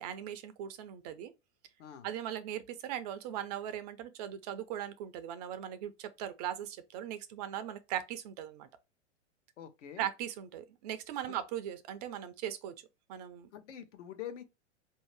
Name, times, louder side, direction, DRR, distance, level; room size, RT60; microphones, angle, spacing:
voice 1, 0.0-1.3 2.0-8.7 10.0-12.7 13.1-13.5, right 10 dB, 35° right, 0.4 m, -39 dB
voice 2, 9.6-10.1 11.3-11.4 13.5-14.4, left 9 dB, 70° left, 0.9 m, -45 dB
4.2 x 2.7 x 3.1 m
hypercardioid pair, 115°, 37 cm